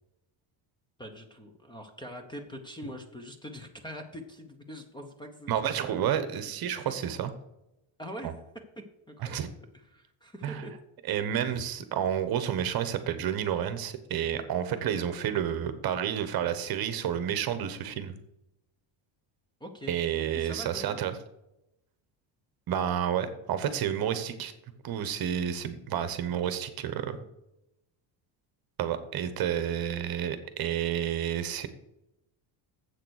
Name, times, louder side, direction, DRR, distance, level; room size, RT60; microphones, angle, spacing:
voice 1, 1.0-5.9 6.8-7.0 8.0-8.4 9.1-9.5 9.7-10.7 19.6-20.0 20.3-21.0, equal, 10° left, 5 dB, 0.8 m, -43 dB
voice 2, 5.5-7.3 8.2-8.3 9.2-9.5 10.4-10.7 11.1-18.1 19.9-21.1 22.7-24.5 24.8-27.2 28.8-31.7, right 9 dB, 45° right, 11 dB, 1.1 m, -30 dB
7.9 x 6.7 x 6.4 m, 0.86 s
cardioid pair, 160°, 49 cm